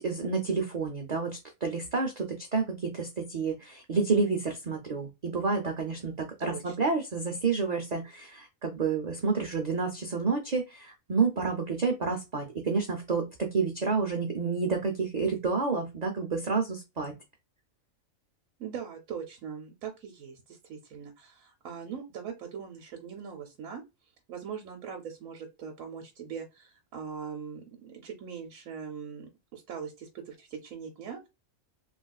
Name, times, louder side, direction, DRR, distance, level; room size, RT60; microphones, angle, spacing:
voice 1, 0.0-17.1, right 4 dB, 55° right, 3 dB, 0.5 m, -29 dB
voice 2, 6.4-6.8 18.6-23.8 24.3-31.3, right 7 dB, 75° right, 4 dB, 1.0 m, -41 dB
3.3 x 2.4 x 2.3 m, 0.23 s
omnidirectional pair, 1.4 m